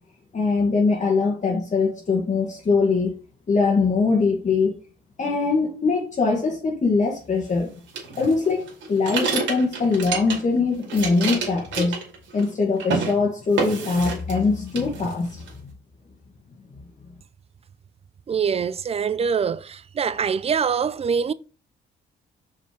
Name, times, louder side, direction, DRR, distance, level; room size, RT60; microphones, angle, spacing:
voice 1, 0.3-3.1 3.5-4.7 5.2-7.7 8.2-12.0 12.3-15.3, left 4 dB, 40° left, 1.6 m, -22 dB
sound 1, 7.9-10.6 10.8-12.5 12.8-13.1 13.6-14.5 14.7-15.5, right 4 dB, 70° right, 2.4 m, -28 dB
voice 2, 18.3-21.3, right 6 dB, 30° right, 0.4 m, -24 dB
5.4 x 4.3 x 5.0 m
cardioid pair, 90°, 20 cm